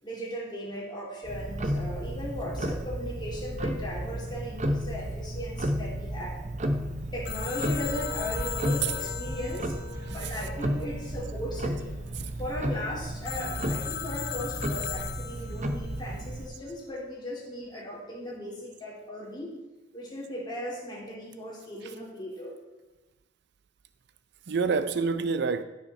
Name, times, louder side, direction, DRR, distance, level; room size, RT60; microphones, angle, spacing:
voice 1, 0.0-6.4 7.1-9.8 10.0-11.9 12.4-19.5 19.9-22.6, equal, 25° left, 3.1 m, -37 dB
Tick-tock, 1.2-16.5, equal, 40° right, 0.9 m, -33 dB
Telephone, 7.2-10.9 13.2-15.8, left 11 dB, 60° left, 0.5 m, -38 dB
sound 1, 7.7-12.6, left 2 dB, ahead, 1.1 m, -46 dB
voice 2, 10.0-10.5 12.1-12.3 21.8-21.9 24.5-25.6, right 5 dB, 65° right, 0.5 m, -28 dB
16.0 x 5.8 x 4.3 m
head